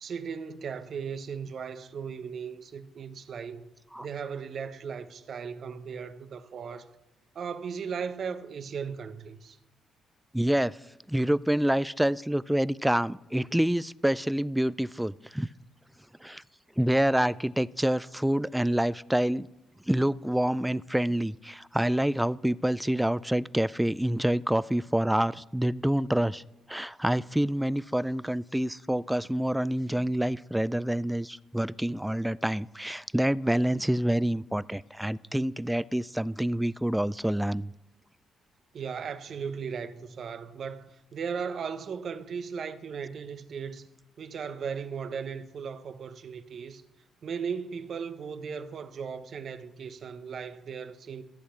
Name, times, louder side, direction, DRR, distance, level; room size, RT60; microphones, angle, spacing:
voice 1, 0.0-3.6 4.0-6.9 7.3-9.6 38.7-43.9 44.2-46.8 47.2-51.2, right 6 dB, 55° right, 1.0 m, -37 dB
voice 2, 10.3-10.8 11.1-15.5 16.2-16.4 16.8-19.5 19.9-26.4 26.7-37.7, right 1 dB, 5° right, 0.3 m, -27 dB
14.0 x 8.4 x 5.8 m
cardioid pair, 90°, 0 cm